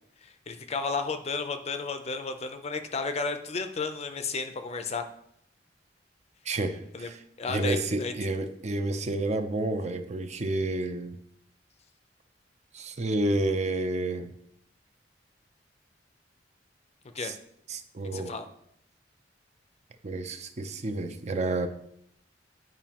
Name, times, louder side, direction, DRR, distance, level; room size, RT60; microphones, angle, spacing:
voice 1, 0.2-5.0 6.9-7.1 7.4-8.1 17.1-17.3 18.1-18.5, left 4 dB, 35° left, 8 dB, 0.5 m, -33 dB
voice 2, 6.4-7.2 7.5-11.1 12.7-14.3 17.2-17.4 17.7-18.3 20.0-21.7, right 2 dB, 40° right, 8 dB, 0.5 m, -30 dB
9.0 x 5.0 x 2.9 m, 0.72 s
head